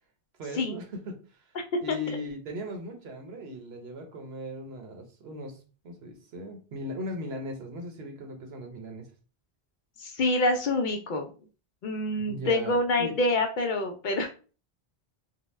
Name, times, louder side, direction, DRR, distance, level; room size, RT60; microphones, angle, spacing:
voice 1, 0.4-1.4 1.8-9.1 12.2-13.1, left 1 dB, 80° right, 3 dB, 1.0 m, -38 dB
voice 2, 1.5-2.2 10.0-11.3 11.8-14.3, left 2 dB, 60° left, 4 dB, 0.6 m, -27 dB
2.7 x 2.1 x 3.1 m, 0.35 s
omnidirectional pair, 1.0 m